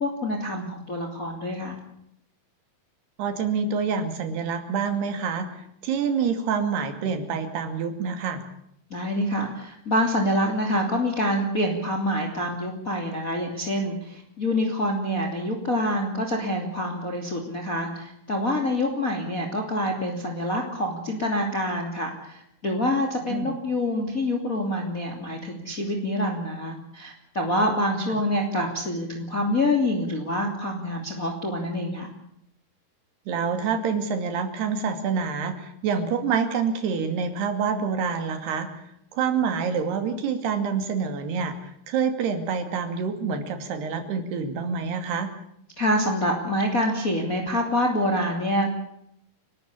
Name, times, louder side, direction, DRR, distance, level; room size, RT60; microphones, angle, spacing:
voice 1, 0.0-1.8 8.9-32.1 45.8-48.7, left 1 dB, 25° left, 3 dB, 2.9 m, -26 dB
voice 2, 3.2-8.4 23.3-23.5 28.1-28.2 33.3-38.7 39.1-45.3, right 6 dB, 90° right, 8 dB, 4.5 m, -27 dB
30.0 x 13.0 x 8.5 m, 0.74 s
omnidirectional pair, 4.5 m